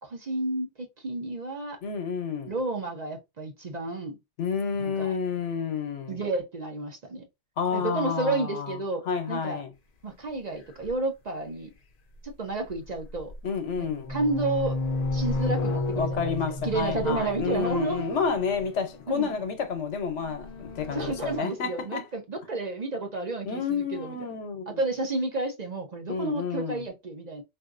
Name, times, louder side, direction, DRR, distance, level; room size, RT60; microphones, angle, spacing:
voice 1, 0.0-1.8 2.5-4.2 4.8-5.1 6.1-7.2 7.7-9.6 10.0-11.7 12.2-13.3 13.8-14.8 15.1-16.4 16.6-18.0 19.1-19.3 20.9-24.3 24.7-27.4, right 2 dB, 45° right, 0.7 m, -31 dB
voice 2, 1.8-2.5 4.4-6.2 7.6-8.8 9.1-9.7 13.4-14.1 16.0-22.0 23.4-24.8 26.1-26.8, left 6 dB, 90° left, 1.1 m, -30 dB
sound 1, 10.8-10.9 12.7-13.4 13.8-19.2 20.0-21.4, left 2 dB, 45° left, 0.6 m, -32 dB
3.4 x 2.6 x 2.4 m
omnidirectional pair, 1.2 m